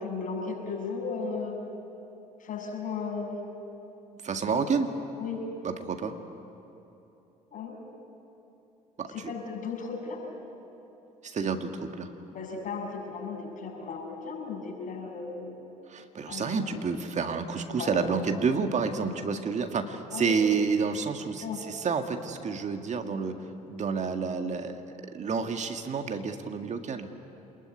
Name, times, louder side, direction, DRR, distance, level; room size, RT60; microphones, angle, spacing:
voice 1, 0.0-1.6 2.4-3.4 4.5-4.6 5.2-5.5 7.5-7.8 9.1-10.2 12.3-15.7 16.3-16.8 17.7-18.0 20.1-20.3 21.4-21.6, left 5 dB, 45° left, 0 dB, 7.2 m, -35 dB
voice 2, 4.2-4.9 5.6-6.1 9.0-9.1 11.2-12.1 15.9-23.4 23.7-24.8 25.1-27.1, right 5 dB, 40° right, 6 dB, 2.0 m, -29 dB
27.0 x 21.0 x 9.7 m, 3.0 s
figure-of-eight pair, 55°, 19 cm